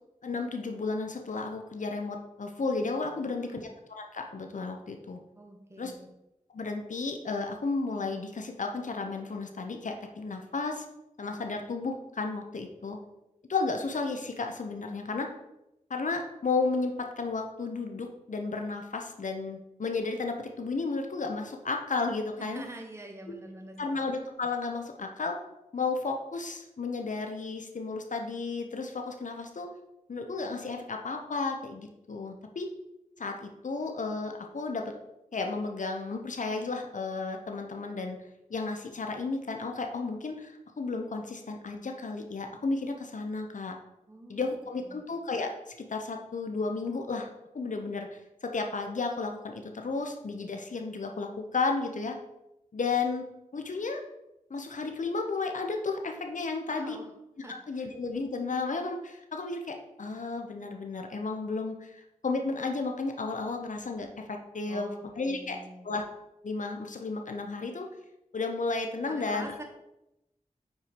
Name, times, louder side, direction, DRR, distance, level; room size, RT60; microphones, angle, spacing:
voice 1, 0.2-3.7 4.0-5.2 5.8-5.9 6.5-10.8 11.2-13.0 13.5-15.3 15.9-22.6 23.8-25.4 25.7-29.7 30.1-32.7 33.2-34.9 35.3-38.2 38.5-43.8 44.3-45.5 45.9-47.3 47.5-52.2 52.7-53.3 53.5-54.0 54.5-57.0 57.7-65.6 65.8-66.0 66.4-67.8 68.3-69.5, left 3 dB, 65° left, 4 dB, 0.9 m, -33 dB
voice 2, 3.2-3.6 5.3-6.1 22.4-24.0 44.1-45.0 56.7-57.1 57.4-57.9 64.7-66.0 69.0-69.6, right 1 dB, 20° right, 2 dB, 1.3 m, -46 dB
5.7 x 4.6 x 5.1 m, 0.89 s
cardioid pair, 45°, 14 cm